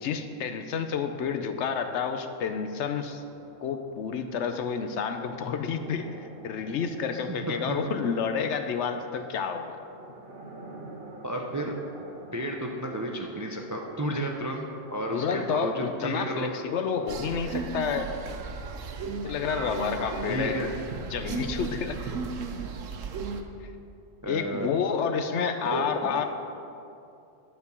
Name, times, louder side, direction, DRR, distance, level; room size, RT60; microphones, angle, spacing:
voice 1, 0.0-3.2 3.6-6.2 6.4-9.8 15.1-18.1 19.2-20.6 21.1-22.1 23.6-23.7 24.3-26.3, left 6 dB, 70° left, 7 dB, 0.9 m, -29 dB
sound 1, 3.2-17.0, right 2 dB, 50° right, 1.3 m, -49 dB
voice 2, 7.3-7.8 11.2-11.8 12.3-16.5 20.3-20.7 24.2-24.7 25.6-26.1, right 1 dB, 25° right, 1 dB, 0.4 m, -32 dB
sound 2, 17.1-23.4, right 5 dB, 85° right, 1.1 m, -35 dB
11.0 x 4.4 x 6.9 m, 2.6 s
omnidirectional pair, 1.3 m